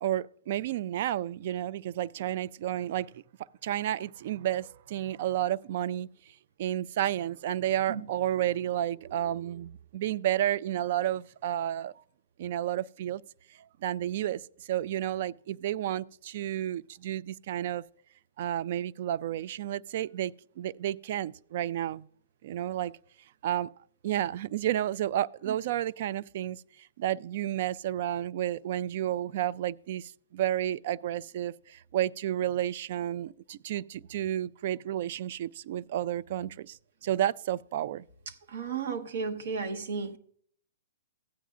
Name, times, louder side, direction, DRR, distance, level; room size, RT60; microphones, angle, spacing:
voice 1, 0.0-3.1 3.6-6.1 6.6-11.9 12.4-13.2 13.8-14.4 14.7-17.8 18.4-22.1 22.4-22.9 23.4-23.7 24.0-26.6 27.0-38.0, right 12 dB, 50° right, 0.3 m, -31 dB
voice 2, 38.5-40.2, right 5 dB, 70° right, 1.1 m, -34 dB
15.0 x 9.1 x 2.5 m
hypercardioid pair, 145°, 0 cm